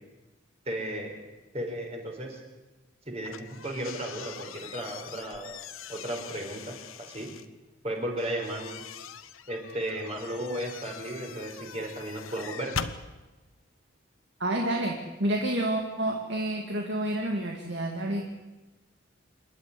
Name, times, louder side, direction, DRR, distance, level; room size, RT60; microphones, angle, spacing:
voice 1, 0.6-1.1 1.5-2.4 3.1-5.6 5.9-7.3 7.8-8.8 9.5-12.7, right 1 dB, 30° right, 1 dB, 4.6 m, -35 dB
sound 1, 3.2-7.5 8.2-13.0, left 7 dB, 85° left, 1.1 m, -42 dB
voice 2, 14.4-18.2, right 1 dB, 60° right, 1 dB, 2.3 m, -29 dB
27.5 x 11.5 x 9.9 m, 1.1 s
head